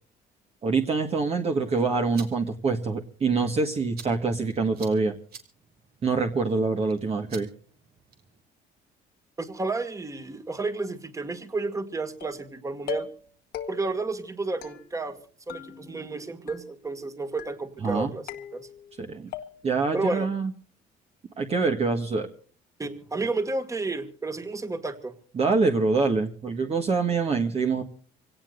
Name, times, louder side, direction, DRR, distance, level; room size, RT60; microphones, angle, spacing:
voice 1, 0.6-5.1 6.0-7.5 17.8-18.1 19.0-19.3 19.6-20.5 21.4-22.3 25.3-27.8, right 4 dB, 35° right, 4 dB, 1.6 m, -25 dB
sound 1, 1.9-8.4, right 6 dB, 65° right, 3.0 m, -50 dB
voice 2, 9.4-13.1 13.7-15.2 15.5-18.2 18.5-18.7 19.9-20.3 22.8-25.1, right 3 dB, 20° right, 9 dB, 2.0 m, -31 dB
sound 2, 12.2-12.5 12.9-13.3 13.5-14.1 14.6-15.2 15.5-16.2 16.5-17.0 17.4-17.9 18.3-19.0 19.3-19.9, left 8 dB, 70° left, 1.5 m, -40 dB
26.0 x 17.5 x 2.6 m, 0.42 s
cardioid pair, 110°, 17 cm